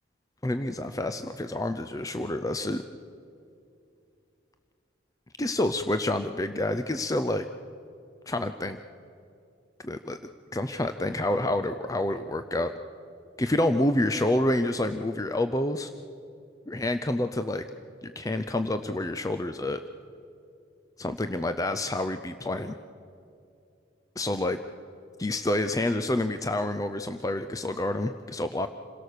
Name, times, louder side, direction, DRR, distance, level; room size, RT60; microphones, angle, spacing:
voice 1, 0.4-2.8 5.4-7.5 8.3-8.8 9.8-10.2 10.5-12.7 13.4-15.9 16.7-17.6 18.0-19.8 21.0-22.7 24.2-24.6 25.2-28.7, left 1 dB, 15° left, 9 dB, 0.5 m, -28 dB
27.5 x 17.5 x 6.7 m, 2.5 s
head